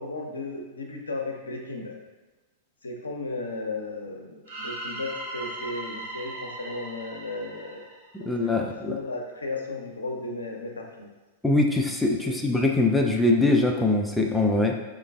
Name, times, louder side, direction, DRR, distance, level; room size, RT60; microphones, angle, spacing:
voice 1, 0.0-2.0 2.8-7.8 8.2-11.1 12.3-12.4, left 2 dB, 75° left, 1 dB, 0.5 m, -35 dB
sound 1, 4.5-8.5, right 2 dB, 60° right, 1.2 m, -38 dB
voice 2, 8.1-9.0 11.4-14.7, left 2 dB, 5° left, 1 dB, 0.3 m, -23 dB
4.4 x 2.4 x 2.3 m, 1.2 s
figure-of-eight pair, 95°, 0 cm